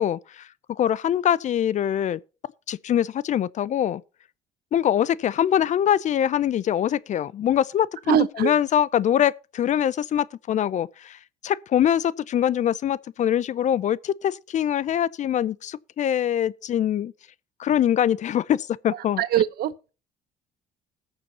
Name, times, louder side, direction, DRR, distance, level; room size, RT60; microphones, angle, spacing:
voice 1, 0.0-2.2 2.7-4.0 4.7-17.1 17.6-19.2, left 10 dB, 45° left, 0.5 m, -23 dB
voice 2, 8.1-8.5 19.2-19.9, right 11 dB, 65° right, 0.9 m, -22 dB
20.5 x 6.9 x 2.8 m
cardioid pair, 110°, 17 cm